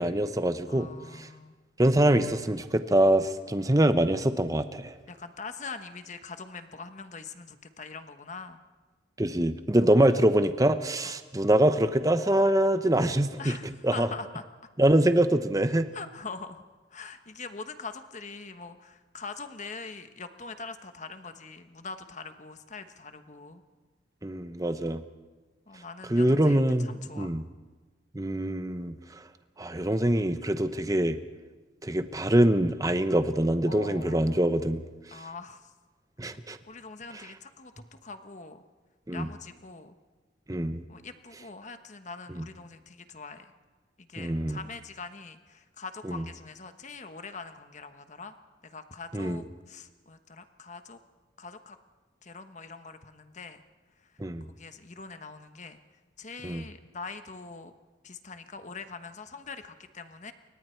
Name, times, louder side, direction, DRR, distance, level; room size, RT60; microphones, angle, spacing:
voice 1, 0.0-0.9 1.2-1.3 1.8-4.9 9.2-13.6 13.8-14.1 14.8-15.9 24.2-25.0 26.1-27.4 28.1-28.9 29.6-31.2 31.8-34.8 36.2-36.6 39.1-39.3 40.5-40.8 42.3-42.4 44.2-44.6 46.0-46.2 49.1-49.4 54.2-54.5 56.4-56.6, right 1 dB, 20° right, 10 dB, 0.9 m, -24 dB
voice 2, 0.7-1.6 5.1-8.6 9.8-10.0 11.0-11.1 13.4-14.4 15.9-16.6 16.9-23.6 24.7-24.9 25.7-27.3 33.7-34.2 35.1-35.7 36.7-38.6 39.1-40.0 40.9-43.5 44.0-48.3 48.6-51.0 51.4-51.8 52.2-53.6 54.5-55.8 56.2-57.7 58.0-60.3, left 4 dB, 40° left, 8 dB, 1.2 m, -43 dB
28.5 x 23.5 x 4.6 m, 1.3 s
head